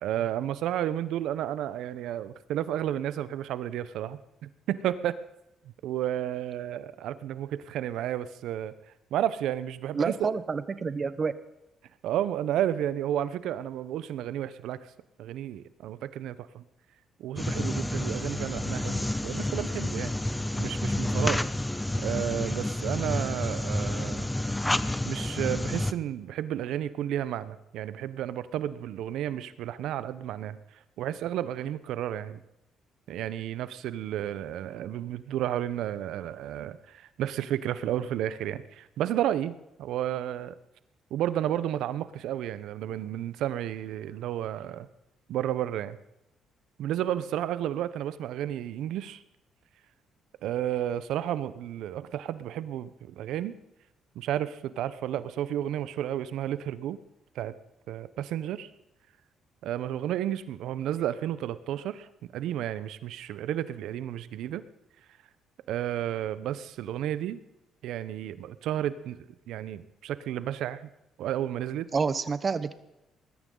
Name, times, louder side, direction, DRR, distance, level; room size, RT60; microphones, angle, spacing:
voice 1, 0.0-5.1 5.8-8.7 9.1-10.1 12.0-14.9 15.2-16.6 17.2-20.1 20.6-21.4 22.0-24.3 25.1-30.6 31.0-32.4 33.1-39.5 39.8-40.5 41.1-44.9 45.3-46.0 46.8-49.2 50.4-53.5 54.1-57.0 57.3-57.5 57.9-58.7 59.6-62.1 62.3-64.6 65.7-67.4 67.8-70.8 71.2-71.9, right 11 dB, 80° right, 15 dB, 0.7 m, -32 dB
voice 2, 9.9-11.3 71.9-72.7, right 5 dB, 40° right, 14 dB, 0.9 m, -28 dB
sound 1, 17.4-25.9, left 1 dB, 10° left, 0.7 m, -29 dB
20.5 x 13.5 x 3.9 m, 0.87 s
supercardioid pair, 75°, 0 cm